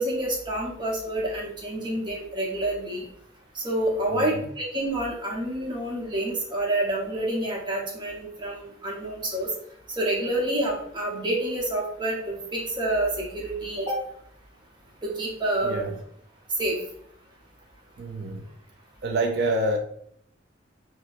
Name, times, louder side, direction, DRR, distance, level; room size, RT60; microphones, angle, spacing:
voice 1, 0.0-3.0 3.5-9.5 10.0-14.0 15.0-15.8 16.6-16.8, right 1 dB, 25° right, 0.8 m, -28 dB
voice 2, 15.6-16.0 18.0-18.4 19.0-19.8, right 2 dB, 60° right, 0.3 m, -27 dB
4.3 x 2.1 x 2.4 m
head